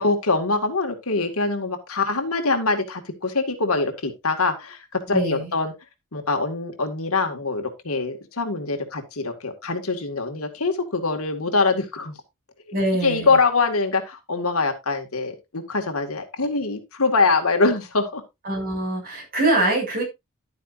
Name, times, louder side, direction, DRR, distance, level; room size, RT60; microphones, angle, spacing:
voice 1, 0.0-5.7 6.1-12.1 13.0-18.2, left 3 dB, 75° left, 5 dB, 2.1 m, -24 dB
voice 2, 5.1-5.5 12.7-13.4 18.4-20.0, right 1 dB, 45° right, 0 dB, 6.9 m, -24 dB
11.5 x 9.3 x 2.6 m, 0.22 s
head